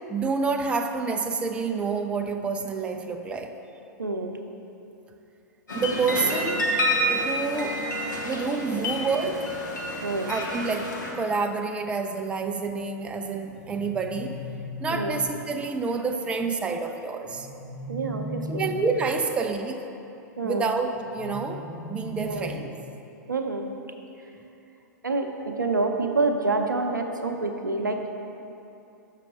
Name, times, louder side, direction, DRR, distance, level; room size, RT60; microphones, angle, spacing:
voice 1, 0.1-3.6 5.7-6.7 7.1-7.8 8.2-9.5 10.3-17.5 18.5-19.8 20.4-22.7, right 4 dB, 10° right, 5 dB, 0.4 m, -28 dB
voice 2, 4.0-4.4 6.3-6.5 10.0-10.3 14.9-15.2 17.9-18.7 20.4-20.7 22.2-22.5 23.3-23.7 25.0-28.1, right 3 dB, 85° right, 4 dB, 0.6 m, -27 dB
sound 1, 5.7-11.1, equal, 75° left, 1.3 m, -29 dB
sound 2, 13.5-15.5 17.2-19.2 20.9-22.9, left 1 dB, 30° left, 1.1 m, -38 dB
6.7 x 5.6 x 5.0 m, 2.8 s
figure-of-eight pair, 100°, 10 cm